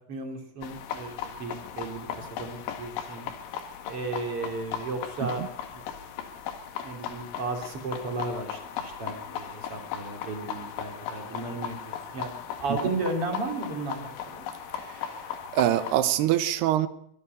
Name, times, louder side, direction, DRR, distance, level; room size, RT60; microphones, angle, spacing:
voice 1, 0.1-3.3 3.8-5.5 5.7-5.8 6.8-14.5, right 3 dB, 35° right, 3.2 m, -34 dB
sound 1, 0.6-16.0, left 8 dB, 80° left, 4.5 m, -37 dB
voice 2, 14.7-16.9, right 12 dB, 70° right, 2.6 m, -26 dB
24.0 x 13.5 x 8.2 m
omnidirectional pair, 5.8 m